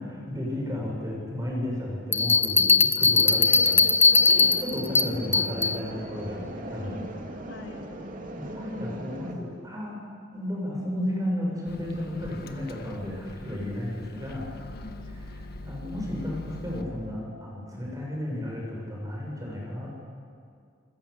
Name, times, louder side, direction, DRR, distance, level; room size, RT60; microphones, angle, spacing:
voice 1, 0.3-3.8 4.3-7.1 8.4-10.0 10.3-14.5 15.6-19.9, left 1 dB, 20° right, -2 dB, 7.6 m, -33 dB
sound 1, 2.1-5.8, left 4 dB, 10° left, 0.7 m, -20 dB
voice 2, 3.3-3.9 4.3-4.6 6.8-7.2 7.5-7.9 13.5-13.8 14.7-15.1, left 2 dB, 75° left, 1 dB, 3.5 m, -42 dB
sound 2, 4.1-9.3, right 1 dB, 45° right, 2.8 m, -39 dB
Microwave oven, 11.6-16.8, left 2 dB, 55° left, 1.7 m, -42 dB
28.0 x 21.0 x 8.7 m, 2.3 s
head